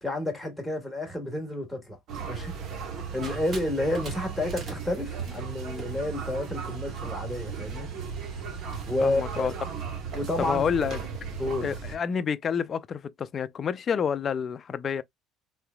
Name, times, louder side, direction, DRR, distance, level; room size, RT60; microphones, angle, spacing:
voice 1, 0.0-2.0 2.3-2.5 3.1-7.9 8.9-9.5 10.1-10.6 11.4-11.7, left 1 dB, ahead, 1.4 m, -30 dB
sound 1, 2.1-12.0, right 6 dB, 50° right, 1.1 m, -36 dB
sound 2, 3.2-11.8, right 2 dB, 30° right, 1.6 m, -46 dB
voice 2, 9.0-9.5 10.4-11.0 11.6-15.0, left 7 dB, 30° left, 0.4 m, -29 dB
3.7 x 3.2 x 2.2 m
cardioid pair, 155°, 0 cm